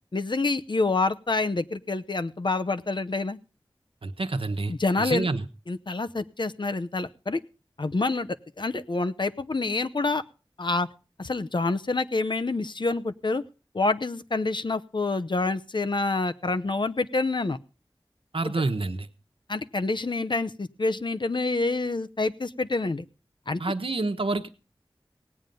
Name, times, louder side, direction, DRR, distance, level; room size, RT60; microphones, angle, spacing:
voice 1, 0.1-3.4 4.7-5.3 5.7-7.4 7.8-10.2 10.6-10.9 11.2-13.4 13.7-17.6 18.4-18.5 19.5-23.0 23.5-23.6, left 3 dB, 60° left, 11 dB, 0.7 m, -27 dB
voice 2, 4.0-4.7 5.0-5.4 18.3-19.1 23.6-24.5, right 3 dB, 85° right, 8 dB, 1.1 m, -28 dB
17.5 x 9.1 x 5.4 m, 0.35 s
wide cardioid pair, 60°, 9 cm